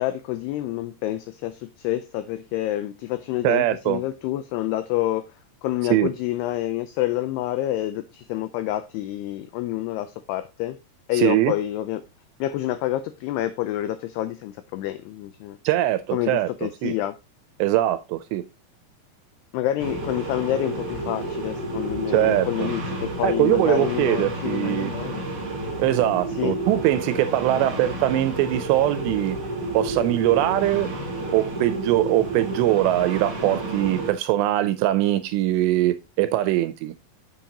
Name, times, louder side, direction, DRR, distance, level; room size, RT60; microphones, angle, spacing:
voice 1, 0.0-5.2 5.6-10.8 11.1-12.0 12.4-15.6 16.1-17.1 19.5-25.3 26.4-26.6, left 14 dB, 90° left, 2.3 m, -28 dB
voice 2, 3.4-4.0 5.9-6.1 11.1-11.5 15.6-16.9 17.6-18.4 22.1-22.7 23.2-24.9 25.8-29.4 29.7-30.9 31.3-36.9, right 14 dB, 85° right, 2.5 m, -22 dB
sound 1, 19.8-34.1, right 2 dB, 40° right, 1.7 m, -31 dB
7.2 x 7.2 x 2.7 m
omnidirectional pair, 5.3 m